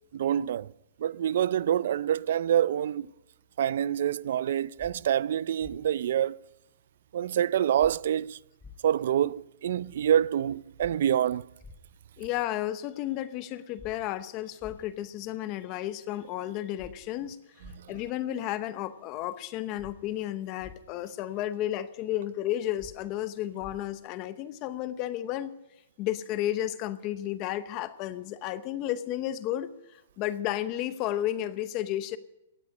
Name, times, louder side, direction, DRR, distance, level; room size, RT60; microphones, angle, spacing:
voice 1, 0.1-0.7 1.0-3.1 3.6-6.4 7.1-8.4 8.8-11.4 17.7-17.9, right 10 dB, 55° right, 0.4 m, -26 dB
sound 1, 4.8-4.9 5.6-5.8 7.8-7.9 8.6-8.7 10.8-10.9 11.6-11.8 13.8-13.9 14.6-14.8 16.8-16.9 17.6-17.8 19.8-19.9 20.6-20.7 22.8-22.9 23.6-23.7, left 3 dB, 5° left, 1.5 m, -47 dB
voice 2, 12.2-17.4 17.9-25.5 26.0-29.7 30.2-32.2, left 13 dB, 25° left, 0.8 m, -32 dB
18.0 x 13.5 x 5.3 m
hypercardioid pair, 170°, 0 cm